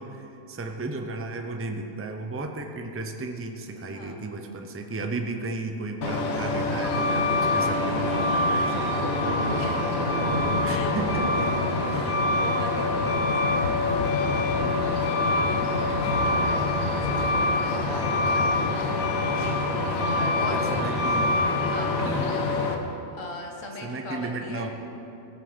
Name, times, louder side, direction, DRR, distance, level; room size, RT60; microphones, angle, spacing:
voice 1, 0.0-9.1 10.6-11.5 20.2-21.4 22.0-22.3 23.8-24.7, right 2 dB, 15° right, 4 dB, 0.4 m, -34 dB
voice 2, 3.9-4.6 9.2-10.3 10.6-11.0 11.7-14.5 14.8-19.0 20.0-20.9 21.6-22.7 23.1-24.7, left 2 dB, 65° left, 1 dB, 1.7 m, -40 dB
Truck, 6.0-22.7, left 2 dB, 80° left, 1.4 m, -25 dB
Thunder, 7.2-22.8, right 1 dB, 45° right, 1.8 m, -38 dB
16.5 x 7.5 x 5.2 m, 2.8 s
omnidirectional pair, 1.4 m